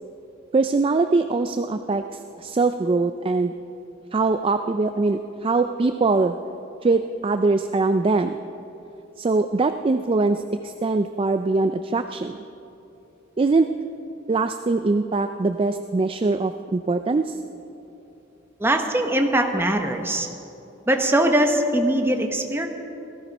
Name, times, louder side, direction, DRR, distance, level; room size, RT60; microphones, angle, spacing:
voice 1, 0.5-2.0 2.4-3.5 4.1-6.4 6.8-8.4 9.2-12.4 13.4-13.7 14.3-17.4, right 3 dB, 30° right, 8 dB, 0.4 m, -22 dB
voice 2, 18.6-20.3 20.9-22.7, right 1 dB, 10° right, 4 dB, 1.1 m, -21 dB
17.5 x 15.0 x 5.4 m, 2.9 s
head